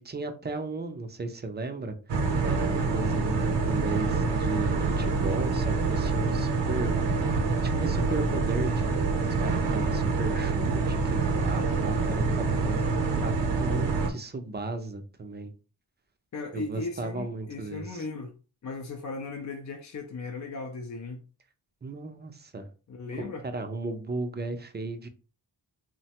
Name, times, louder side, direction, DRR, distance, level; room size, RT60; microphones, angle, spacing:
voice 1, 0.0-2.0 2.4-6.9 7.8-12.8 13.2-15.5 16.5-18.0 21.8-22.7 23.2-25.1, right 3 dB, 25° right, 0.5 m, -35 dB
sound 1, 2.1-14.1, right 4 dB, 70° right, 0.8 m, -26 dB
voice 2, 16.3-18.3 18.6-21.2 22.9-23.5, left 3 dB, 40° left, 0.5 m, -37 dB
3.1 x 2.1 x 2.8 m
cardioid pair, 70°, 45 cm